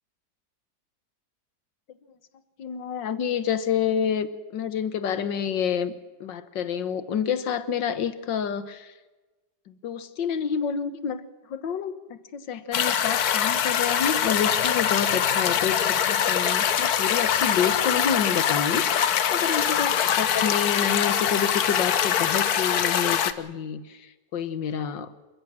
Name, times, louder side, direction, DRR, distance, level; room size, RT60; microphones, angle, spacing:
voice 1, 2.6-5.9 6.2-8.9 9.7-11.2 11.5-25.1, left 7 dB, 85° left, 13 dB, 2.0 m, -28 dB
sound 1, 12.7-23.3, left 9 dB, 60° left, 1.4 m, -23 dB
27.5 x 15.0 x 7.6 m, 1.2 s
omnidirectional pair, 1.9 m